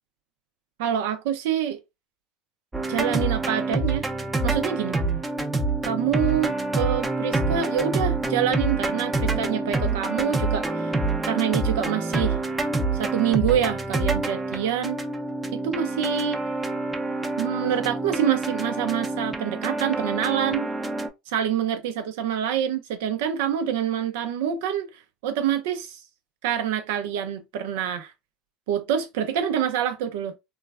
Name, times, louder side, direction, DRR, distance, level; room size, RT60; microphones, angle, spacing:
voice 1, 0.8-1.8 2.9-4.0 4.4-5.0 5.8-10.9 11.3-12.4 12.9-15.0 15.6-16.4 17.4-20.7 21.3-24.9 25.2-26.0 26.4-28.1 28.7-30.4, right 9 dB, 80° right, 0.4 m, -26 dB
sound 1, 2.7-21.1, right 3 dB, 15° right, 0.5 m, -27 dB
3.1 x 2.1 x 2.3 m
hypercardioid pair, 85°, 0 cm